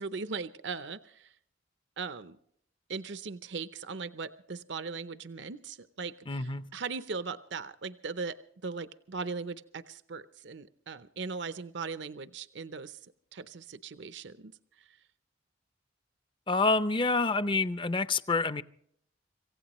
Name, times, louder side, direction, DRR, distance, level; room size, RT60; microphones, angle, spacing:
voice 1, 0.0-1.3 2.0-2.4 2.9-13.0 13.3-14.5 14.8-15.0, right 4 dB, 65° right, 13 dB, 0.7 m, -39 dB
voice 2, 6.3-6.7 16.5-18.6, left 3 dB, 25° left, 14 dB, 0.6 m, -27 dB
26.5 x 16.0 x 3.1 m, 0.67 s
head